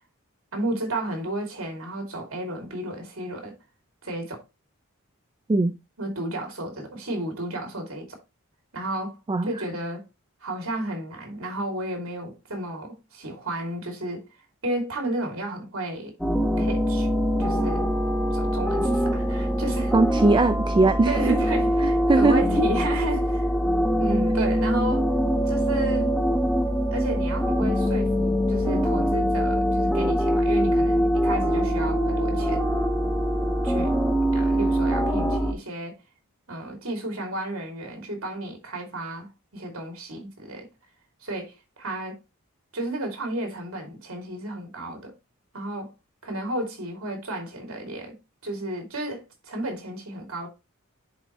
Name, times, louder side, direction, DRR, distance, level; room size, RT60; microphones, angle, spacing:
voice 1, 0.5-3.6 4.0-4.4 6.0-8.2 8.7-10.0 10.4-14.3 14.6-16.1 16.6-17.1 17.4-17.9 18.3-19.9 21.0-23.5 24.0-25.1 25.4-26.1 26.9-32.6 33.6-33.9 34.3-36.0 36.5-40.7 41.2-42.2 42.7-45.1 45.5-45.9 46.2-50.5, right 1 dB, 75° right, 2.8 m, -32 dB
sound 1, 16.2-35.5, equal, ahead, 1.1 m, -23 dB
voice 2, 19.9-21.2 21.8-22.4, right 2 dB, 20° right, 0.3 m, -20 dB
10.0 x 4.3 x 3.0 m
head